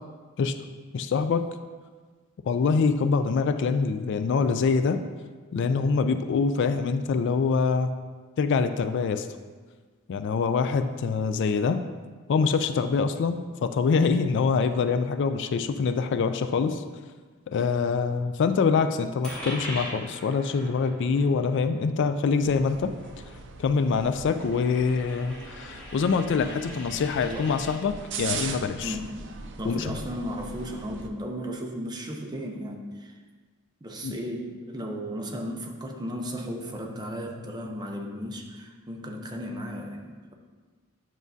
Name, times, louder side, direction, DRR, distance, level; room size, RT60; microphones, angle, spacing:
voice 1, 0.9-1.4 2.5-5.0 5.5-7.9 8.4-9.3 10.1-11.8 12.3-16.8 17.5-22.9 23.6-29.0 29.6-29.9 34.0-34.2, left 5 dB, 55° left, 10 dB, 0.3 m, -25 dB
Coin (dropping), 19.2-27.8, equal, 5° left, 2.3 m, -42 dB
sound 1, 22.4-31.1, right 5 dB, 55° right, 0.6 m, -40 dB
voice 2, 28.8-29.2 29.6-33.2 33.8-40.3, equal, 20° right, 1 dB, 0.7 m, -35 dB
9.2 x 6.1 x 2.7 m, 1.5 s
head